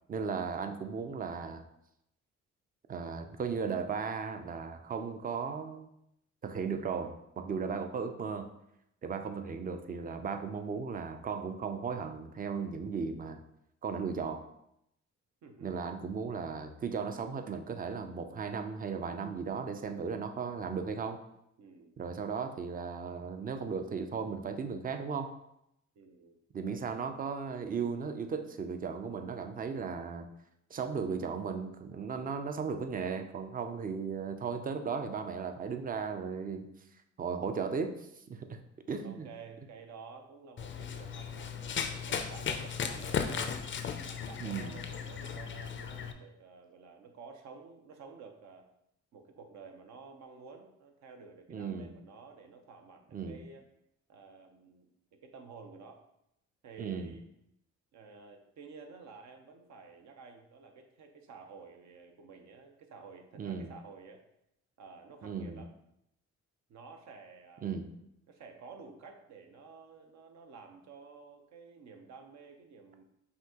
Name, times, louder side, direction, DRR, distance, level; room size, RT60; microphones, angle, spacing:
voice 1, 0.1-1.6 2.9-5.9 6.4-8.5 9.0-13.4 13.8-14.4 15.6-21.2 22.0-25.3 26.5-30.3 30.7-36.7 37.2-38.6 38.9-39.3 44.4-44.8 51.5-51.9 53.1-53.4 56.8-57.1 63.4-63.7 65.2-65.6 67.6-67.9, right 5 dB, 30° right, 7 dB, 0.4 m, -36 dB
voice 2, 7.5-7.9 15.4-15.9 21.6-21.9 25.9-26.4 39.0-43.6 44.0-48.7 49.1-53.6 54.1-56.0 56.6-57.2 57.9-64.2 64.8-65.7 66.7-67.7 68.3-73.0, right 5 dB, 65° right, 4 dB, 0.8 m, -51 dB
Run, 40.6-46.1, left 7 dB, 40° left, 0.4 m, -36 dB
5.5 x 2.7 x 2.8 m, 0.80 s
cardioid pair, 90°, 30 cm